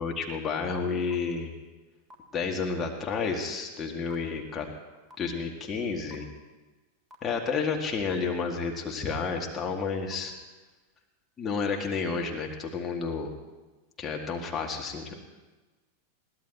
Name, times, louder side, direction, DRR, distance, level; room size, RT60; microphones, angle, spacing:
voice 1, 0.0-1.5 2.3-4.7 5.2-6.3 7.2-10.3 11.4-13.3 14.0-15.1, left 5 dB, 20° left, 1 dB, 2.2 m, -31 dB
sound 1, 1.1-1.2 2.1-2.2 3.1-3.2 4.1-4.2 5.1-5.2 6.1-6.2 7.1-7.2 8.1-8.2 9.1-9.2 10.1-10.2, left 1 dB, 15° right, 2.7 m, -48 dB
22.0 x 17.0 x 3.1 m, 1.2 s
figure-of-eight pair, 90°, 0 cm